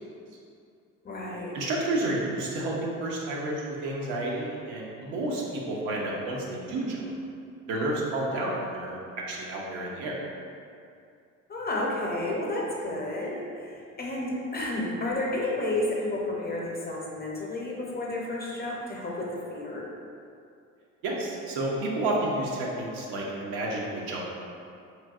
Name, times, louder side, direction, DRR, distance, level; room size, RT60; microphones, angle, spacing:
voice 1, 1.0-1.6 11.5-19.8, left 1 dB, 25° left, -3 dB, 0.6 m, -31 dB
voice 2, 1.5-7.1 7.7-9.0 9.3-10.1 21.0-24.2, right 2 dB, 75° right, -3 dB, 0.7 m, -30 dB
3.2 x 2.5 x 2.3 m, 2.5 s
hypercardioid pair, 60°, 39 cm